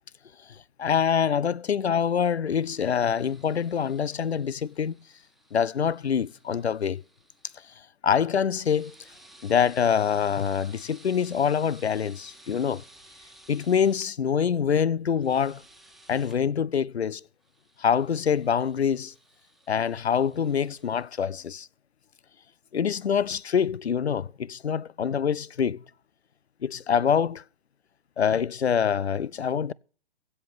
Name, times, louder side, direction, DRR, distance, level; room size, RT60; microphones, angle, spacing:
voice 1, 0.5-5.0 5.5-7.0 8.0-8.9 9.4-12.8 13.5-15.6 16.1-17.2 17.8-19.1 19.7-21.7 22.7-25.8 26.6-27.4 28.2-29.7, left 7 dB, 85° left, 0.6 m, -25 dB
sound 1, 2.5-7.8 8.6-14.1 15.2-16.4 17.4-21.1, right 1 dB, ahead, 1.4 m, -55 dB
16.0 x 5.4 x 9.3 m
figure-of-eight pair, 115°, 31 cm